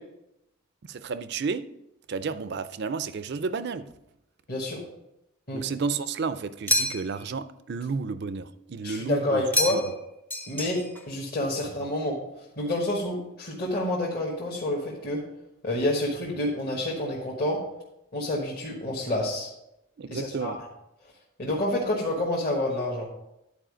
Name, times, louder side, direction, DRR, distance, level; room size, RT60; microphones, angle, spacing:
voice 1, 0.9-1.7 2.1-3.8 5.5-9.4 9.7-9.8 20.0-20.6, right 5 dB, 50° right, 13 dB, 0.4 m, -31 dB
voice 2, 4.5-4.8 5.5-5.6 8.8-9.8 10.5-10.8 11.1-12.2 12.6-15.2 15.6-17.6 18.1-19.5 20.1-20.6 21.4-23.1, left 1 dB, 45° left, -3 dB, 1.4 m, -28 dB
sound 1, 6.7-7.3 9.5-10.0 10.3-11.1, left 1 dB, 10° left, 0.6 m, -27 dB
10.0 x 4.7 x 5.0 m, 0.85 s
head